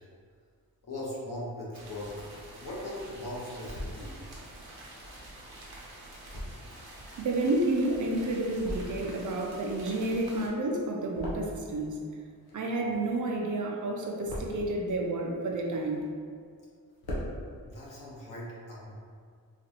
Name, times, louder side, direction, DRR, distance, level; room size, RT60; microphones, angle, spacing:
voice 1, 0.8-2.2 2.6-4.3 17.6-18.9, left 1 dB, 60° left, -6 dB, 1.1 m, -39 dB
sound 1, 1.7-10.5, right 1 dB, 80° right, 0.9 m, -48 dB
sound 2, 3.6-4.0 4.7-8.0 8.4-9.2 9.4-11.9 12.2-13.4 13.7-14.7 15.3-16.3 16.6-16.7 16.9-17.3, left 1 dB, 85° left, 0.9 m, -42 dB
voice 2, 7.2-12.0 12.5-16.1, right 2 dB, 55° right, 0 dB, 0.5 m, -30 dB
3.9 x 2.5 x 2.9 m, 2.1 s
wide cardioid pair, 130°, 37 cm